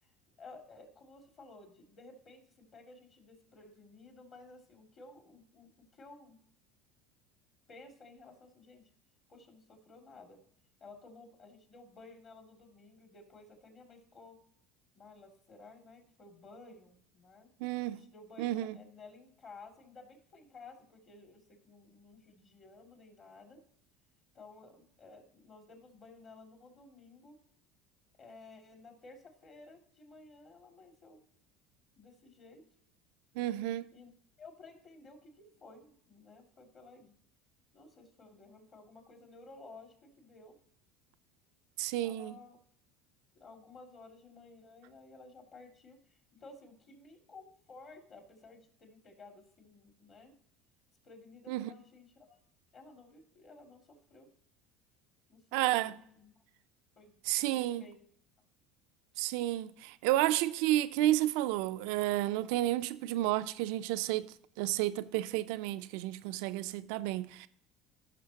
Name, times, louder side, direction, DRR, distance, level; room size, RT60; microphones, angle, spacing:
voice 1, 0.0-6.4 7.7-8.9 9.3-10.4 10.8-14.4 15.0-17.5 17.9-23.6 24.3-27.4 28.2-31.2 32.0-32.6 33.9-34.1 34.4-37.2 37.7-40.6 42.0-42.6 43.3-50.3 51.0-52.4 52.7-54.3 55.3-56.4 57.0-58.0, left 3 dB, 40° left, 2.4 m, -55 dB
voice 2, 17.6-18.0 18.4-18.8 33.4-33.9 41.8-42.4 51.5-51.7 55.5-56.0 57.3-57.8 59.2-67.5, right 15 dB, 75° right, 0.4 m, -31 dB
15.0 x 6.1 x 2.8 m
supercardioid pair, 100°, 0 cm